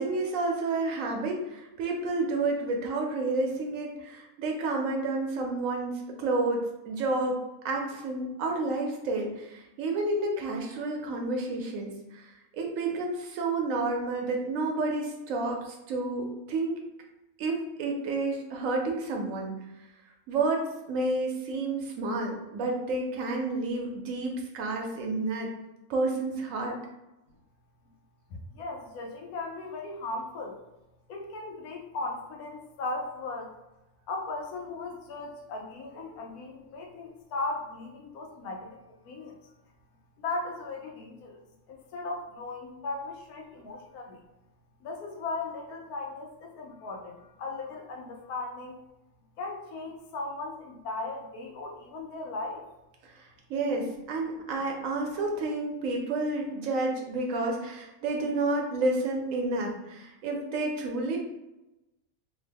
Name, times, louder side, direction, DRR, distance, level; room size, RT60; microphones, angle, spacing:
voice 1, 0.0-7.4 7.6-16.8 17.4-19.5 20.3-25.5 25.9-26.8 53.0-61.2, right 2 dB, 70° right, 1 dB, 0.9 m, -30 dB
voice 2, 28.3-30.6 31.1-33.5 34.1-38.8 39.0-39.4 40.2-44.2 44.8-48.8 49.4-52.7, left 3 dB, 90° left, 2 dB, 1.1 m, -37 dB
3.0 x 2.1 x 3.3 m, 0.97 s
omnidirectional pair, 1.5 m